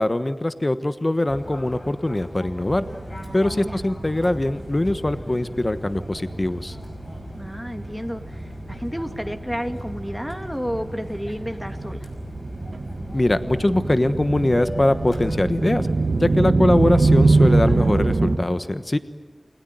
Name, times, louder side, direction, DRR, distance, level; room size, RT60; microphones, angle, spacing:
voice 1, 0.0-2.8 3.3-6.8 13.1-15.9 16.2-19.0, left 1 dB, 40° left, 11 dB, 1.2 m, -22 dB
Fixed-wing aircraft airplane, 1.3-18.2, left 1 dB, 60° left, 5.6 m, -40 dB
sound 1, 2.7-18.4, right 3 dB, 80° right, 1.6 m, -25 dB
voice 2, 3.5-3.8 7.4-12.1, equal, 5° left, 6 dB, 2.5 m, -31 dB
29.0 x 21.5 x 9.3 m, 1.5 s
wide cardioid pair, 55°, 0 cm